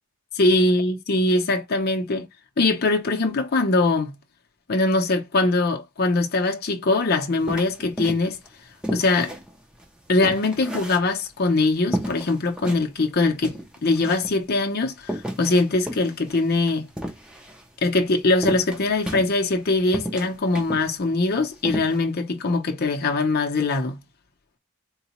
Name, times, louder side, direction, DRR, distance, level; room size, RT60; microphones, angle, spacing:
voice 1, 0.4-2.3 2.6-4.2 4.7-8.4 8.9-9.3 10.1-13.6 13.8-16.9 17.8-24.0, left 2 dB, 45° left, 0.7 m, -22 dB
sound 1, 7.5-8.5 8.8-11.5 11.9-12.8 13.2-13.3 13.4-14.4 15.0-17.6 18.4-19.6 19.9-20.9 21.2-21.3 21.6-22.0, right 1 dB, 5° right, 0.5 m, -32 dB
3.9 x 2.2 x 2.8 m
head